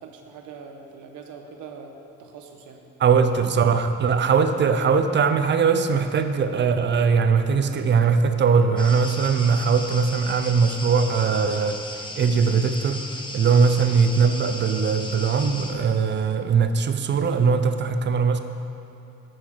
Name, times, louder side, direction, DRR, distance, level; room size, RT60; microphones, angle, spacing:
voice 1, 0.0-2.8, right 5 dB, 80° right, 3 dB, 0.8 m, -42 dB
voice 2, 3.0-13.1 13.3-18.4, right 5 dB, 40° right, 9 dB, 0.5 m, -20 dB
sound 1, 8.8-15.7, left 2 dB, 15° left, 0.9 m, -36 dB
6.4 x 4.8 x 6.1 m, 2.8 s
cardioid pair, 90°, 30 cm